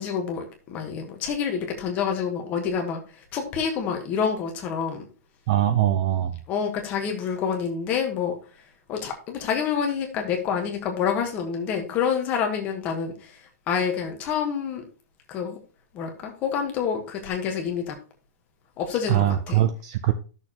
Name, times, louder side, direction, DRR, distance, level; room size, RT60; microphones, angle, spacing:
voice 1, 0.0-3.0 3.3-5.0 6.5-8.3 8.9-13.3 13.7-14.9 15.3-15.6 15.9-18.0 18.8-19.6, left 7 dB, 20° left, 3 dB, 1.2 m, -27 dB
voice 2, 5.5-6.4 19.1-20.1, right 12 dB, 25° right, 10 dB, 0.4 m, -22 dB
12.0 x 6.5 x 2.9 m, 0.37 s
hypercardioid pair, 180°, 9 cm